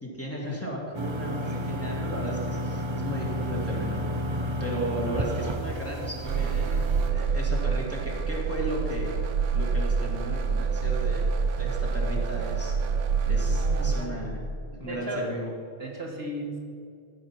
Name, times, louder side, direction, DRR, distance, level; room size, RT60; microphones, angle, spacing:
voice 1, 0.0-4.1 4.6-9.1 9.5-11.3 11.6-12.7 13.2-14.4 14.8-15.5, right 1 dB, 10° left, -4 dB, 1.7 m, -35 dB
sound 1, 0.9-7.1, equal, 35° right, 0.5 m, -31 dB
sound 2, 6.2-14.1, right 5 dB, 75° right, 1.0 m, -26 dB
voice 2, 13.4-14.3 14.7-15.3 15.8-16.6, right 2 dB, 55° right, -1 dB, 1.6 m, -36 dB
14.0 x 4.8 x 5.7 m, 2.4 s
omnidirectional pair, 1.3 m